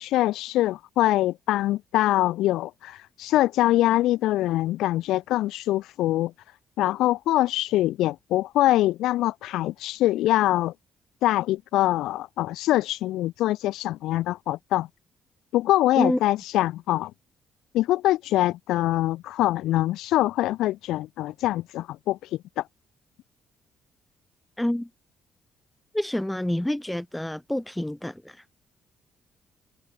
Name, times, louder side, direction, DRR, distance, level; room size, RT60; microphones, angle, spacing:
voice 1, 0.0-6.3 6.8-10.7 11.2-14.9 15.5-17.1 17.7-22.2 22.6-22.7, left 15 dB, 90° left, 4.3 m, -24 dB
voice 2, 24.6-24.9 25.9-28.4, left 1 dB, 5° left, 3.3 m, -27 dB
cardioid pair, 90°, 0 cm